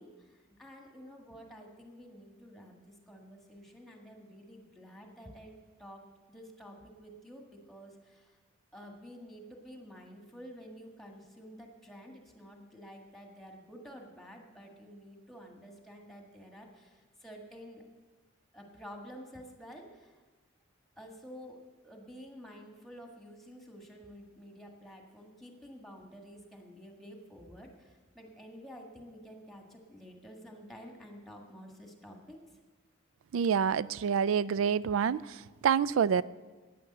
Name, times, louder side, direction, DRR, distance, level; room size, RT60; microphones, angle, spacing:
voice 1, 0.0-6.0 6.3-8.4 8.7-17.8 18.5-20.2 21.0-32.6, equal, ahead, 1.6 m, -50 dB
voice 2, 33.3-35.2 35.6-36.2, right 7 dB, 90° right, 0.3 m, -27 dB
11.0 x 9.4 x 7.8 m
head